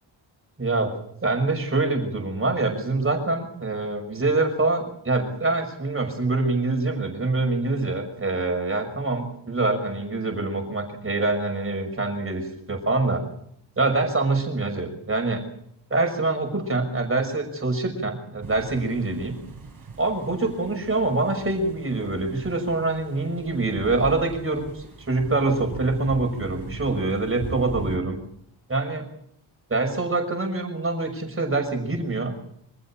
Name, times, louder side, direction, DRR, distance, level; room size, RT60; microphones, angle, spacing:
voice 1, 0.6-0.9 1.2-13.2 13.8-15.4 15.9-19.4 20.0-28.2 28.7-29.1 29.7-32.3, right 3 dB, 30° right, 4 dB, 6.1 m, -25 dB
sound 1, 18.4-28.0, right 4 dB, 45° right, 4.5 m, -40 dB
25.5 x 15.5 x 8.7 m, 0.71 s
wide cardioid pair, 145°, 46 cm